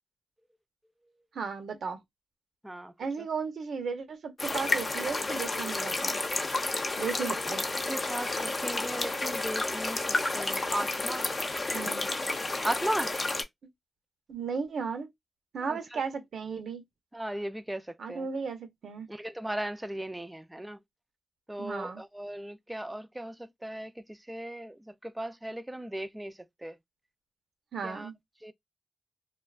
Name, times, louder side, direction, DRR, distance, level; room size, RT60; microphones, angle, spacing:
voice 1, 1.3-2.0 3.0-6.2 7.0-7.6 11.7-12.1 14.3-15.1 15.5-16.8 18.0-19.1 21.6-22.0 27.7-28.1, right 5 dB, 85° right, 0.6 m, -35 dB
sound 1, 4.4-13.4, left 2 dB, 45° left, 0.6 m, -31 dB
voice 2, 7.9-10.1 10.3-11.3 12.6-13.1 15.7-16.0 17.1-18.3 19.1-20.8 21.5-24.8 25.0-26.3 26.6-26.8 27.8-28.1 28.4-28.5, right 1 dB, 10° right, 0.3 m, -36 dB
2.5 x 2.1 x 2.3 m
cardioid pair, 55°, 0 cm